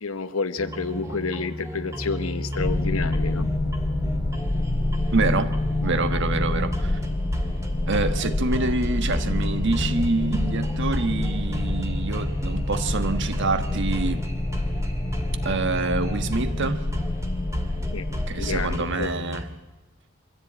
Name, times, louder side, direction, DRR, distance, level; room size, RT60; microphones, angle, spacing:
voice 1, 0.0-3.5 17.8-19.1, left 4 dB, 80° left, 1.1 m, -30 dB
sound 1, 0.6-19.4, equal, 15° right, 2.3 m, -33 dB
sound 2, 2.6-18.8, left 2 dB, 30° left, 0.8 m, -27 dB
voice 2, 5.1-5.5 5.8-7.0 7.9-14.3 15.4-16.9 18.3-19.5, right 3 dB, 60° right, 1.4 m, -26 dB
24.0 x 15.0 x 8.7 m
head